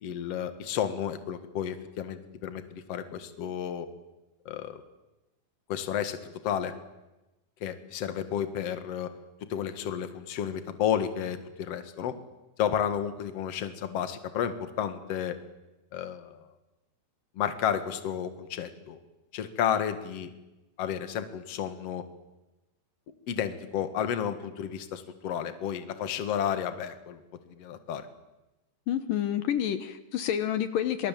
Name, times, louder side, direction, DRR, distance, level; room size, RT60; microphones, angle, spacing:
voice 1, 0.0-3.9 4.5-4.8 5.7-6.2 6.4-6.7 7.6-9.1 9.5-12.1 12.6-15.3 15.9-16.4 17.4-19.0 19.3-20.3 20.8-22.0 23.3-27.2 27.6-28.1, left 9 dB, 50° left, 9 dB, 2.5 m, -31 dB
voice 2, 28.9-31.1, left 10 dB, 75° left, 10 dB, 2.7 m, -29 dB
27.5 x 27.5 x 7.6 m, 1.0 s
omnidirectional pair, 4.2 m